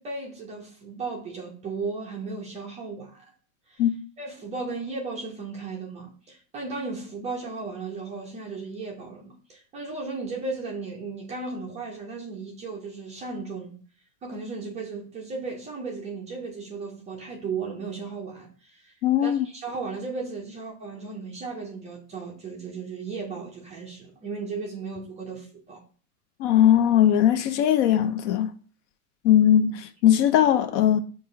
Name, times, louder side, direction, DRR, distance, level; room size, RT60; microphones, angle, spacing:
voice 1, 0.0-3.2 3.7-3.8 4.2-13.8 14.2-18.9 19.2-25.8, right 4 dB, 15° right, 0.4 m, -35 dB
voice 2, 19.0-19.5 26.4-28.5 29.2-31.0, left 10 dB, 55° left, 0.5 m, -19 dB
5.4 x 2.4 x 3.8 m
supercardioid pair, 140°, 44 cm